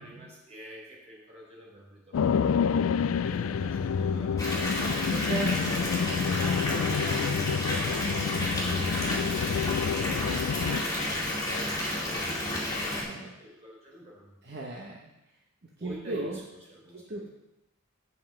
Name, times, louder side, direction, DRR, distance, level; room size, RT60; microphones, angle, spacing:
voice 1, 0.0-2.6 3.2-5.7 6.1-9.6 10.0-14.3 15.8-17.2, equal, 35° right, -4 dB, 3.6 m, -46 dB
sound 1, 2.1-10.8, left 6 dB, 90° left, 0.3 m, -28 dB
Water tap faucet / Bathtub (filling or washing) / Fill (with liquid), 4.4-13.0, left 1 dB, 20° left, 2.3 m, -31 dB
voice 2, 5.1-5.6 6.0-6.4 13.0-13.3 14.4-15.1 15.8-16.4 16.9-17.3, right 2 dB, 50° right, -1 dB, 1.0 m, -37 dB
7.8 x 5.5 x 7.6 m, 0.92 s
head